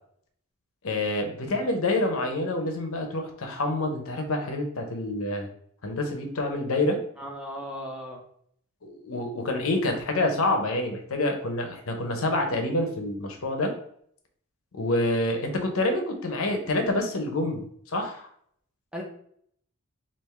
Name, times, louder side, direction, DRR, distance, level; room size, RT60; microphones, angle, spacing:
voice 1, 0.8-5.5 5.8-7.0 8.8-13.7 14.7-17.6 17.9-18.3, left 2 dB, 75° left, 4 dB, 0.7 m, -27 dB
voice 2, 7.2-8.2 18.9-19.0, equal, 5° right, -1 dB, 0.5 m, -36 dB
3.6 x 2.5 x 3.2 m, 0.65 s
head